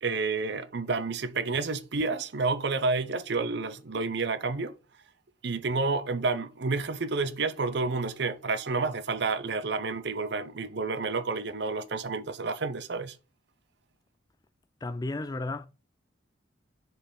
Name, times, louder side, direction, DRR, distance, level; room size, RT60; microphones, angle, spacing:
voice 1, 0.0-4.7 5.4-13.2, right 3 dB, 55° right, 0.6 m, -30 dB
voice 2, 14.8-15.7, left 2 dB, 20° left, 0.3 m, -33 dB
6.6 x 4.0 x 3.8 m
head